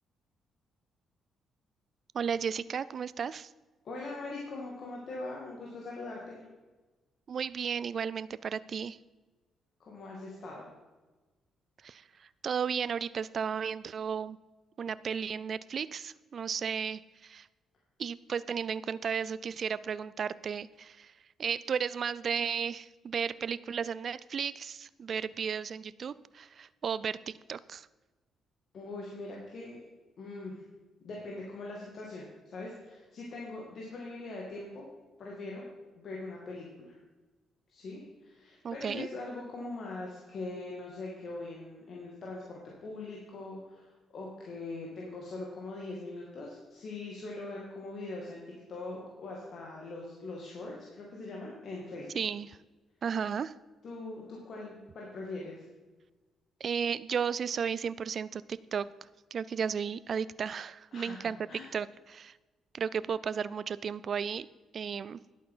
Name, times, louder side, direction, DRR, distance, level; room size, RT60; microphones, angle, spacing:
voice 1, 2.1-3.5 7.3-9.0 11.8-14.4 14.8-17.5 18.0-21.1 21.4-27.9 38.6-39.1 52.2-52.6 53.0-53.5 56.6-58.9 59.3-61.4 61.7-62.3 62.7-64.5 64.7-65.2, right 7 dB, 50° right, 17 dB, 0.3 m, -34 dB
voice 2, 3.8-6.4 9.8-10.7 28.7-29.8 30.2-30.6 31.0-34.9 35.2-35.7 36.0-37.0 37.7-48.4 48.7-52.1 53.8-55.6 60.9-61.7, left 2 dB, 55° left, -2 dB, 2.3 m, -42 dB
11.0 x 8.5 x 5.6 m, 1.2 s
cardioid pair, 90°, 0 cm